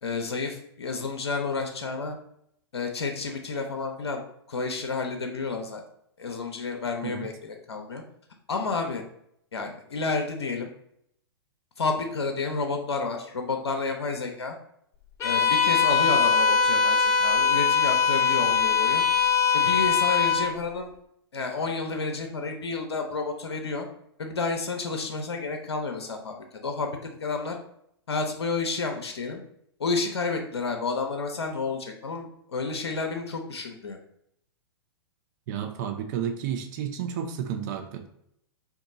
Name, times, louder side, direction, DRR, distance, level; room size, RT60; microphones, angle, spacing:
voice 1, 0.0-2.2 2.7-4.2 4.5-5.8 6.2-8.0 8.5-9.0 9.5-10.7 11.8-14.5 15.2-19.0 19.5-20.9 21.3-23.9 24.2-26.4 26.6-27.6 28.1-29.4 29.8-34.0, left 4 dB, 80° left, 4 dB, 0.5 m, -30 dB
Bowed string instrument, 15.2-20.5, left 6 dB, 20° left, 0.8 m, -22 dB
voice 2, 35.5-38.1, right 8 dB, 45° right, 5 dB, 0.5 m, -31 dB
2.9 x 2.3 x 3.7 m, 0.72 s
figure-of-eight pair, 105°, 14 cm